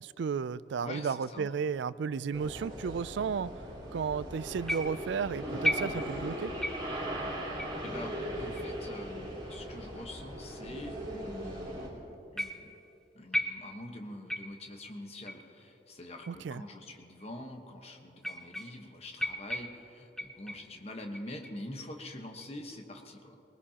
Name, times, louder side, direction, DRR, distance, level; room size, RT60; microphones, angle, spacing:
voice 1, 0.0-3.5 3.9-6.5 16.3-16.6, right 6 dB, 75° right, 17 dB, 0.3 m, -33 dB
voice 2, 0.8-1.5 7.8-12.7 13.1-23.4, left 1 dB, 35° left, 3 dB, 1.2 m, -45 dB
sound 1, 2.3-11.9, equal, 25° right, 2.8 m, -39 dB
sound 2, 4.7-5.2 5.6-6.3 6.6-7.0 7.6-7.8 8.6-8.7 9.5-9.6 10.5-10.6 12.4-12.8 13.3-13.9 14.3-14.7 15.3-15.5 16.2-16.3 17.2-17.3 18.2-18.9 19.2-20.8 21.1-21.6 22.1-22.5, equal, ahead, 0.5 m, -36 dB
20.5 x 19.5 x 2.9 m, 2.9 s
head